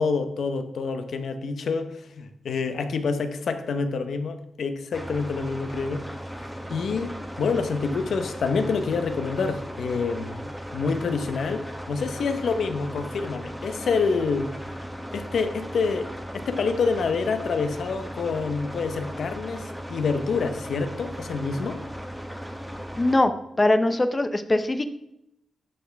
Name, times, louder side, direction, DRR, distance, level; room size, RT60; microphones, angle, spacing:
voice 1, 0.0-6.0 6.7-14.5 15.1-21.8, left 4 dB, 65° left, 9 dB, 0.9 m, -27 dB
sound 1, 4.9-23.1, equal, ahead, 1.0 m, -37 dB
voice 2, 23.0-23.3 23.6-24.9, left 2 dB, 20° left, 10 dB, 0.6 m, -21 dB
12.0 x 5.9 x 3.5 m, 0.82 s
wide cardioid pair, 130°, 0 cm